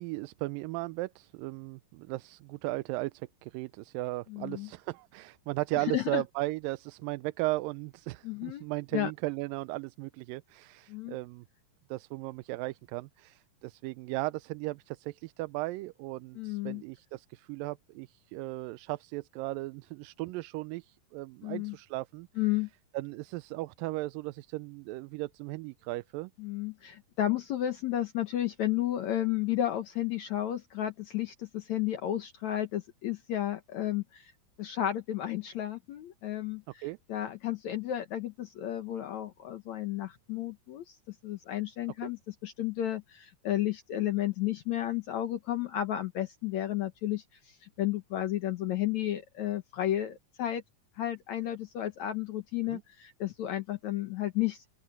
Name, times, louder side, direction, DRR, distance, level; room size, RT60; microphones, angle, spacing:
voice 1, 0.0-11.5 11.9-22.3 22.9-26.3 36.8-37.0 42.0-42.1 52.7-52.8, right 20 dB, 90° right, 2.3 m, -36 dB
voice 2, 4.3-4.7 5.8-6.2 8.2-8.6 8.9-9.1 10.9-11.2 16.4-16.8 21.4-21.8 22.4-22.7 26.4-34.3 34.6-50.6 51.0-54.6, left 12 dB, 65° left, 2.2 m, -32 dB
open air
omnidirectional pair, 3.9 m